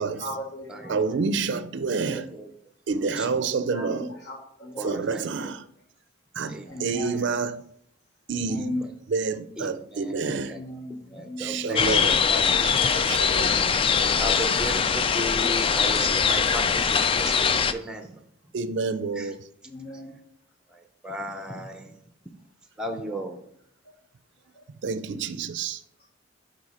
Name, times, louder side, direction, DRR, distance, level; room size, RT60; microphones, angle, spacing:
voice 1, 0.0-1.2 2.1-2.3 3.1-5.5 6.6-7.4 8.4-8.9 10.4-11.7 19.6-20.2 23.1-23.4 24.5-24.6, left 1 dB, 60° left, 1.3 m, -38 dB
voice 2, 0.9-2.3 2.9-4.1 4.8-5.6 6.4-7.6 8.3-8.8 9.1-10.5 11.4-12.2 12.6-13.5 18.5-19.4 24.8-25.8, right 4 dB, 65° right, 0.4 m, -28 dB
voice 3, 2.1-2.5 3.2-3.3 3.5-3.6 4.8-5.5 6.4-7.3 9.6-10.6 11.1-13.0 14.2-18.1 19.2-19.3 20.7-21.9 22.8-23.4, equal, 5° right, 0.7 m, -36 dB
sound 1, 11.8-17.7, left 6 dB, 30° left, 0.3 m, -22 dB
9.7 x 4.0 x 4.2 m
head